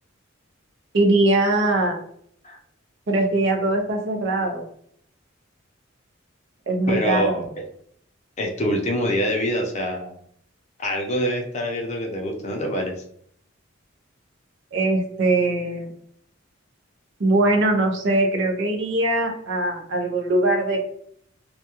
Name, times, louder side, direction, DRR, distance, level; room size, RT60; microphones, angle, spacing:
voice 1, 0.9-2.0 3.1-4.7 6.7-7.4 14.7-15.9 17.2-20.8, right 2 dB, 65° right, 2 dB, 0.6 m, -21 dB
voice 2, 6.9-7.6 8.4-10.1 10.8-12.9, equal, 35° left, 1 dB, 0.5 m, -25 dB
2.3 x 2.1 x 2.8 m, 0.64 s
head